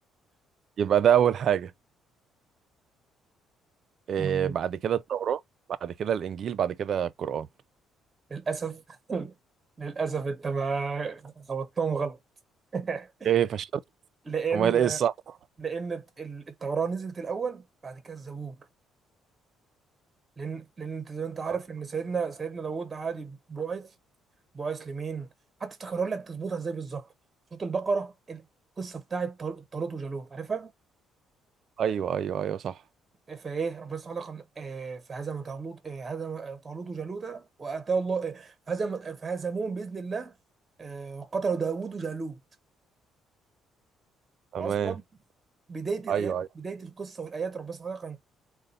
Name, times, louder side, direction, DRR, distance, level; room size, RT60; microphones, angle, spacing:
voice 1, 0.8-1.7 4.1-5.4 5.8-7.5 13.3-13.8 14.5-15.1 21.5-21.6 31.8-32.8 44.5-45.0 46.1-46.5, right 9 dB, 50° right, 0.4 m, -26 dB
voice 2, 4.2-4.5 8.3-9.3 9.8-12.2 12.7-13.3 14.3-15.0 15.6-18.6 20.4-23.9 24.5-25.3 25.6-27.1 27.5-28.5 28.8-30.7 33.3-40.3 40.8-42.4 44.5-45.0 45.7-48.2, right 5 dB, 20° right, 0.8 m, -33 dB
3.9 x 2.2 x 4.0 m
cardioid pair, 140°, 0 cm